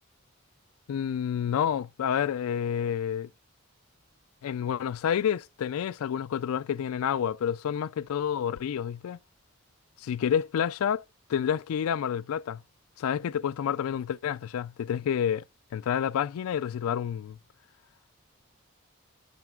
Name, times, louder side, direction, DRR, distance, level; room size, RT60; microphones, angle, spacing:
voice 1, 0.9-3.3 4.4-9.2 10.0-11.0 11.3-12.6 13.0-15.4 15.7-17.4, left 8 dB, 80° left, 0.3 m, -29 dB
9.1 x 6.0 x 2.3 m
head